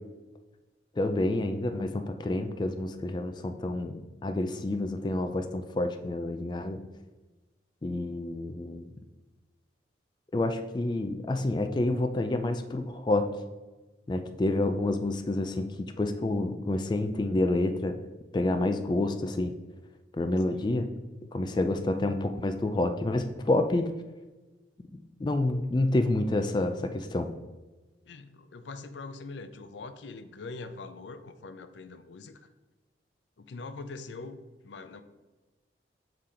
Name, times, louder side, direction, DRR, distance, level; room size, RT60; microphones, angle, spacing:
voice 1, 1.0-6.8 7.8-8.9 10.3-13.3 14.1-18.0 18.3-19.5 20.2-20.9 21.3-23.9 25.2-27.3, left 2 dB, 25° left, 7 dB, 0.3 m, -28 dB
voice 2, 20.5-20.9 28.1-32.4 33.4-34.4 34.6-35.0, left 3 dB, 80° left, 11 dB, 0.5 m, -43 dB
6.7 x 3.8 x 4.3 m, 1.2 s
head